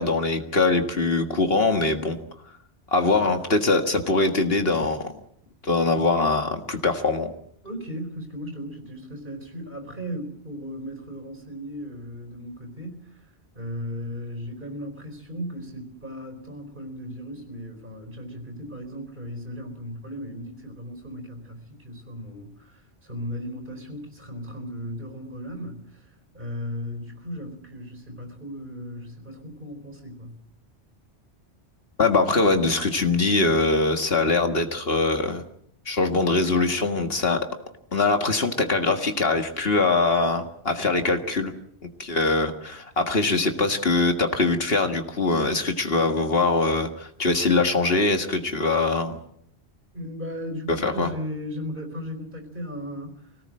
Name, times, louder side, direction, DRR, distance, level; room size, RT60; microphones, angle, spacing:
voice 1, 0.0-2.2 2.9-5.2 5.6-7.3 32.0-35.4 35.9-37.4 37.9-41.5 42.0-49.2 50.7-51.1, left 3 dB, 60° left, 2.0 m, -22 dB
voice 2, 7.6-13.2 13.5-26.1 26.3-30.4 49.9-53.1, equal, 50° right, 4.5 m, -36 dB
25.5 x 18.0 x 7.7 m
omnidirectional pair, 1.1 m